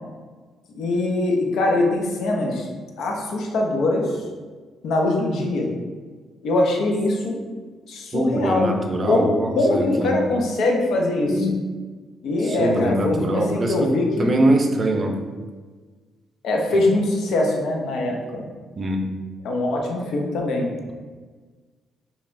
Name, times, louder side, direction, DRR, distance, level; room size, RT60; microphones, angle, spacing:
voice 1, 0.7-2.7 3.0-4.2 4.8-5.7 6.4-7.4 7.9-8.7 9.0-11.5 12.2-14.3 16.4-18.4 19.4-20.7, left 2 dB, 75° left, 0 dB, 0.7 m, -22 dB
voice 2, 8.1-10.2 11.3-11.6 12.4-15.2 18.8-19.0, right 1 dB, 40° right, 3 dB, 0.5 m, -23 dB
5.4 x 2.4 x 2.5 m, 1.4 s
cardioid pair, 90°, 0 cm